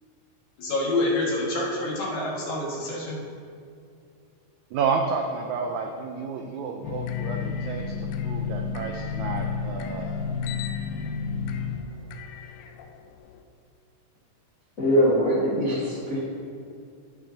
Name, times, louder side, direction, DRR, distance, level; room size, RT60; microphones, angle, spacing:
voice 1, 0.6-3.2, left 2 dB, 65° left, -5 dB, 3.1 m, -27 dB
voice 2, 4.7-10.3, right 5 dB, 85° right, 3 dB, 1.6 m, -31 dB
sound 1, 6.8-13.4, left 6 dB, 85° left, 2.2 m, -31 dB
voice 3, 14.8-16.2, equal, 45° left, -9 dB, 1.1 m, -22 dB
16.5 x 5.6 x 2.8 m, 2.4 s
omnidirectional pair, 4.0 m